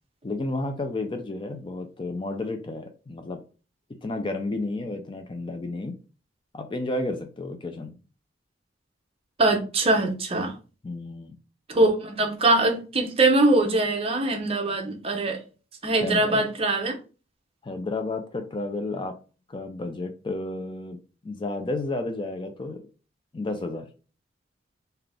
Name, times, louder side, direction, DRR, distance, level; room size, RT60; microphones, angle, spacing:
voice 1, 0.2-3.4 4.0-6.0 6.5-8.0 10.8-11.4 16.0-16.4 17.6-19.2 19.5-22.9 23.3-23.9, left 2 dB, 25° left, 0.4 m, -32 dB
voice 2, 9.4-10.5 11.7-15.4 15.8-17.0, right 2 dB, 30° right, 0.8 m, -22 dB
3.8 x 2.8 x 3.4 m
head